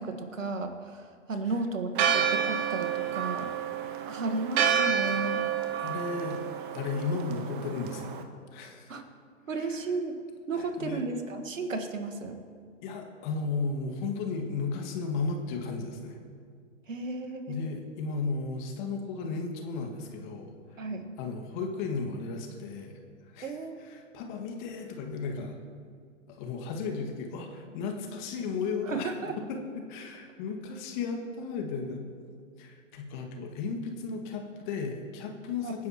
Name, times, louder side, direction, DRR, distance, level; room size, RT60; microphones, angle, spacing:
voice 1, 0.0-3.5 4.1-5.5 8.9-9.0 9.5-10.2 10.5-12.4 16.9-17.7 20.8-21.1 23.4-23.8 28.9-29.4 35.6-35.7, right 3 dB, 85° right, 6 dB, 1.8 m, -34 dB
Church bell, 1.9-8.2, right 8 dB, 40° right, 1.2 m, -29 dB
voice 2, 5.8-6.4 6.7-8.3 8.5-8.9 9.5-9.8 10.5-11.0 12.8-16.2 17.5-20.8 21.2-23.0 23.3-25.6 26.3-29.1 29.5-32.1 32.6-35.9, left 4 dB, 40° left, 2 dB, 2.0 m, -35 dB
26.5 x 10.5 x 3.1 m, 2.1 s
hypercardioid pair, 130°, 38 cm